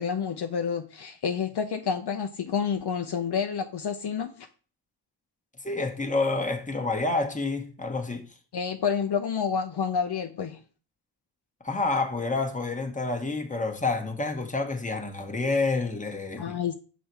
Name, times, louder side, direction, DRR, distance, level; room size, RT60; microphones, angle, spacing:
voice 1, 0.0-4.5 8.5-10.6 16.4-16.7, left 6 dB, 60° left, 0.6 m, -29 dB
voice 2, 5.6-8.3 11.6-16.6, left 3 dB, 15° left, 1.2 m, -28 dB
5.6 x 4.1 x 4.6 m
cardioid pair, 50°, 46 cm